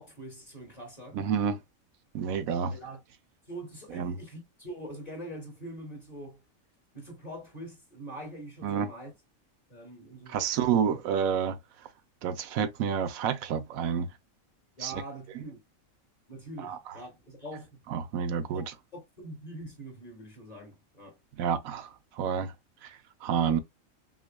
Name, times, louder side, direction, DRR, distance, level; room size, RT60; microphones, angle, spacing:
voice 1, 0.0-1.2 2.7-3.0 3.5-6.4 6.9-9.1 9.7-10.8 14.8-15.6 16.3-17.8 18.5-21.2, right 1 dB, 25° left, 1.9 m, -44 dB
voice 2, 1.1-1.6 2.1-2.7 3.9-4.2 8.6-8.9 10.3-11.6 12.2-14.1 14.8-14.9 16.6-17.0 17.9-18.6 21.4-22.5 22.8-23.6, right 7 dB, 80° right, 1.1 m, -29 dB
5.9 x 2.4 x 2.2 m
omnidirectional pair, 1.5 m